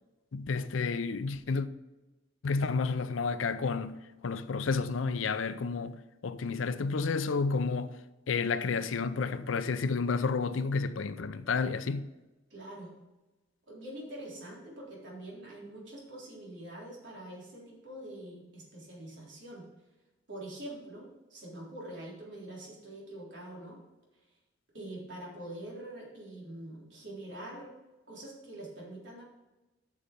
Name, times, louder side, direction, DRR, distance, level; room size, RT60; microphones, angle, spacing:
voice 1, 0.3-1.7 2.4-6.0 6.2-7.9 8.3-12.1, left 4 dB, 90° left, 0.5 m, -31 dB
voice 2, 12.5-12.9 13.7-19.7 20.3-23.8 24.7-27.7 28.1-29.2, right 1 dB, 65° right, 3.7 m, -44 dB
8.6 x 6.5 x 5.2 m
head